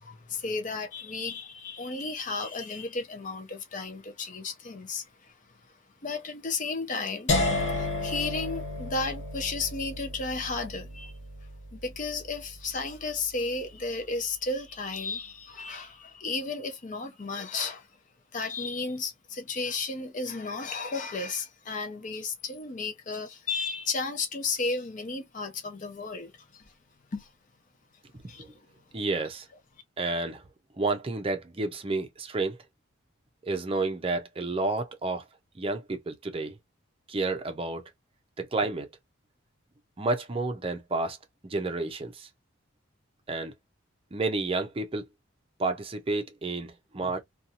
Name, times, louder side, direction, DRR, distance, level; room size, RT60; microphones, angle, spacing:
voice 1, 0.0-5.1 6.0-7.3 7.7-11.1 11.7-17.9 18.3-26.6 27.1-27.3 28.3-28.4, left 3 dB, 40° left, 0.5 m, -33 dB
sound 1, 7.3-13.2, left 2 dB, 60° left, 0.9 m, -32 dB
voice 2, 28.9-29.5 30.0-30.4 30.8-32.6 33.4-35.2 35.6-36.5 37.1-37.9 38.4-38.9 40.0-41.2 41.4-42.3 43.3-43.5 44.1-45.1 45.6-47.2, right 3 dB, 25° right, 0.5 m, -30 dB
2.6 x 2.3 x 2.7 m
head